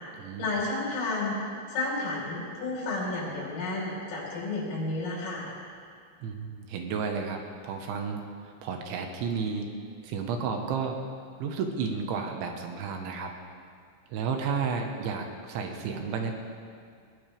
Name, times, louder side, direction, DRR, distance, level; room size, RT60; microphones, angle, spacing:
voice 1, 0.4-1.4 1.7-5.5, left 2 dB, 85° left, -5 dB, 7.0 m, -31 dB
voice 2, 6.2-8.2 8.6-9.7 10.0-11.0 11.4-13.3 14.1-16.4, right 5 dB, 75° right, 3 dB, 3.5 m, -32 dB
20.5 x 20.5 x 3.5 m, 2.2 s
omnidirectional pair, 5.7 m